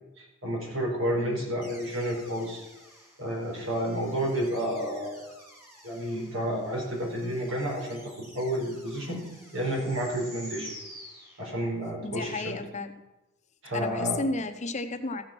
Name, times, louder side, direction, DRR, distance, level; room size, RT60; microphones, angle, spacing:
voice 1, 0.2-2.6 3.2-5.2 5.8-9.2 9.5-10.7 11.4-12.6 13.6-14.2, equal, 85° right, -2 dB, 4.5 m, -30 dB
sound 1, 1.6-11.9, equal, 15° right, 2.9 m, -50 dB
voice 2, 12.0-12.9 13.7-15.2, left 3 dB, 35° left, 7 dB, 0.8 m, -32 dB
14.5 x 6.1 x 6.0 m, 1.0 s
head